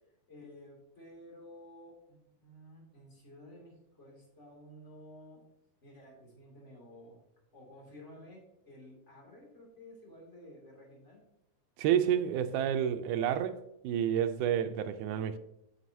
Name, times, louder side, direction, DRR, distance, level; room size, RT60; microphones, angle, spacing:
voice 1, 0.3-5.4 5.8-7.2 7.5-11.2, left 1 dB, 25° left, 2.4 m, -53 dB
voice 2, 11.8-13.6 13.8-15.4, right 9 dB, 85° right, 2.0 m, -29 dB
9.4 x 6.7 x 2.7 m
omnidirectional pair, 3.6 m